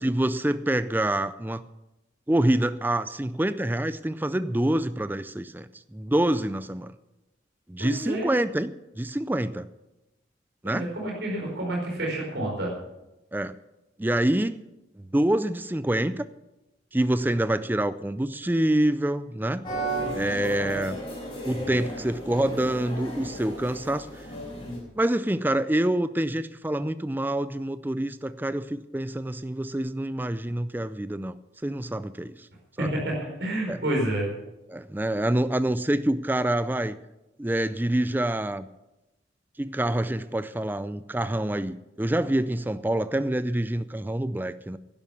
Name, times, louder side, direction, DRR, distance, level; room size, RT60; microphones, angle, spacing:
voice 1, 0.0-1.6 2.3-7.0 7.7-9.7 10.6-10.9 13.3-13.5 14.0-14.6 15.0-16.2 16.9-19.6 20.1-21.0 21.4-24.2 25.0-31.3 31.6-32.5 32.8-32.9 33.7-33.8 34.7-37.0 37.4-38.7 39.6-44.8, right 1 dB, 10° right, 14 dB, 0.4 m, -26 dB
voice 2, 7.8-8.3 10.6-12.7 32.8-34.3, right 1 dB, 70° right, -1 dB, 4.6 m, -29 dB
sound 1, 19.6-24.8, right 1 dB, 25° left, 6.1 m, -34 dB
11.5 x 11.0 x 7.2 m, 0.97 s
head